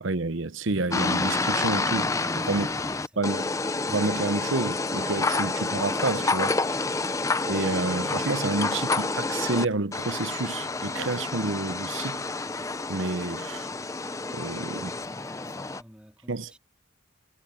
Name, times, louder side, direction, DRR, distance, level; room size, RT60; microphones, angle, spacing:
voice 1, 0.0-2.7 3.2-3.5 3.9-6.8 7.5-12.3 12.9-13.7 14.3-14.9 16.3-16.5, right 3 dB, 70° right, 0.9 m, -29 dB
sound 1, 0.9-9.6 9.9-15.8, left 3 dB, 15° left, 0.5 m, -29 dB
voice 2, 2.4-3.4 14.7-16.6, equal, 5° right, 3.8 m, -51 dB
head